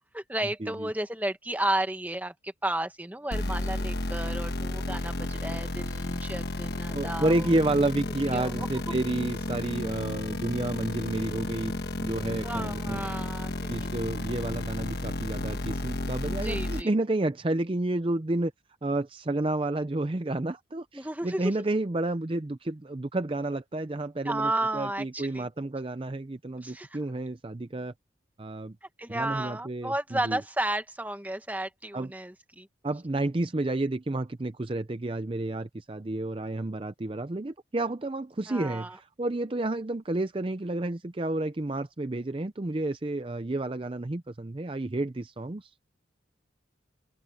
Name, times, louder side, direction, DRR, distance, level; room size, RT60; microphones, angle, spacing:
voice 1, 0.1-7.5 8.3-8.7 12.4-13.9 16.2-16.9 20.9-21.5 24.2-25.5 26.6-27.0 28.8-32.7 38.5-39.0, right 1 dB, 10° right, 1.3 m, -33 dB
sound 1, 3.3-16.8, left 1 dB, 55° left, 1.3 m, -32 dB
voice 2, 6.9-11.7 12.0-13.1 13.7-18.5 18.8-27.9 28.4-28.8 29.1-30.4 31.9-32.1 32.8-45.7, right 2 dB, 25° right, 0.5 m, -30 dB
open air
head